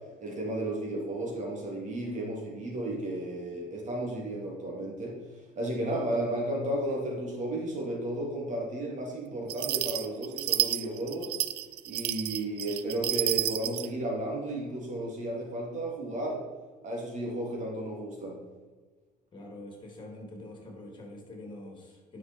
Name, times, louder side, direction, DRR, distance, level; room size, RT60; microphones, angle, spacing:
voice 1, 0.2-11.3 11.8-16.4 16.8-18.4, right 1 dB, 45° right, -1 dB, 3.2 m, -33 dB
sound 1, 9.5-13.9, right 14 dB, 75° right, 0.5 m, -30 dB
voice 2, 19.3-22.2, left 1 dB, 25° left, 0 dB, 3.2 m, -45 dB
9.7 x 6.2 x 4.6 m, 1.4 s
cardioid pair, 110°, 17 cm